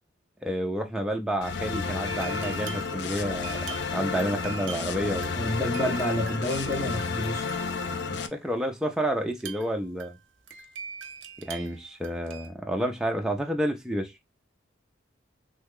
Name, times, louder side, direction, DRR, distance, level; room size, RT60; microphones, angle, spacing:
voice 1, 0.4-3.6 3.9-5.3 8.1-10.2 11.5-14.1, equal, 5° right, 0.4 m, -29 dB
sound 1, 1.4-8.3, left 5 dB, 60° left, 0.4 m, -31 dB
sound 2, 2.0-8.3 9.3-12.5, right 7 dB, 70° right, 0.5 m, -44 dB
voice 2, 5.3-7.5, left 1 dB, 15° left, 1.0 m, -29 dB
3.2 x 2.3 x 3.4 m
head